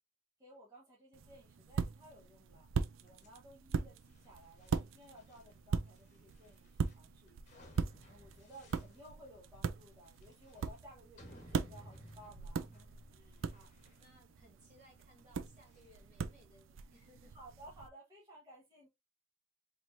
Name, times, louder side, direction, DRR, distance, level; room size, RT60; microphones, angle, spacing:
voice 1, 0.4-13.5 17.3-18.9, right 1 dB, 20° right, 1.1 m, -58 dB
sound 1, 1.1-17.9, right 5 dB, 90° right, 0.4 m, -41 dB
sound 2, 3.0-16.3, equal, 40° left, 1.1 m, -60 dB
voice 2, 13.5-17.4, equal, 40° right, 2.5 m, -64 dB
4.4 x 3.0 x 2.5 m
head